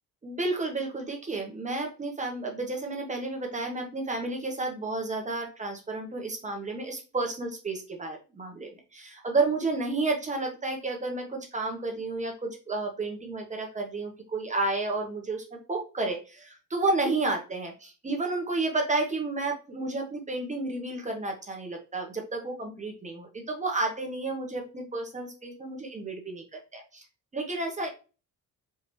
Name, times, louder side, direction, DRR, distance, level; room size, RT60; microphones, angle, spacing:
voice 1, 0.2-27.0 27.3-27.9, right 3 dB, 20° right, 2 dB, 0.9 m, -31 dB
4.5 x 3.4 x 2.9 m, 0.32 s
cardioid pair, 150°, 35 cm